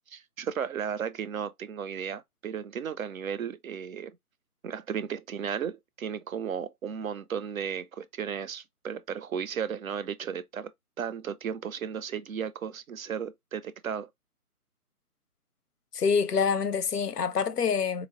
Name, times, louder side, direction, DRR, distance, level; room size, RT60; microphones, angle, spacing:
voice 1, 0.1-4.2 4.6-10.7 11.0-14.1, right 7 dB, 65° right, 0.5 m, -34 dB
voice 2, 15.9-18.1, left 6 dB, 90° left, 0.6 m, -26 dB
3.8 x 2.0 x 2.8 m
figure-of-eight pair, 145°, 46 cm